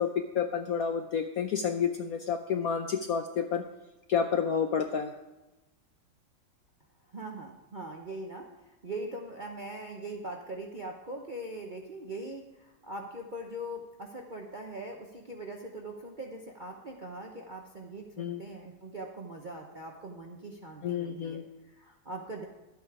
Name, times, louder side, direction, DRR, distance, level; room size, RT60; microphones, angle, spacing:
voice 1, 0.0-3.6 4.1-5.1 18.2-18.4 20.8-21.4, left 7 dB, 70° left, 6 dB, 0.8 m, -30 dB
voice 2, 7.1-22.4, right 1 dB, 45° right, 1 dB, 0.6 m, -41 dB
11.5 x 8.2 x 4.7 m, 1.1 s
omnidirectional pair, 2.1 m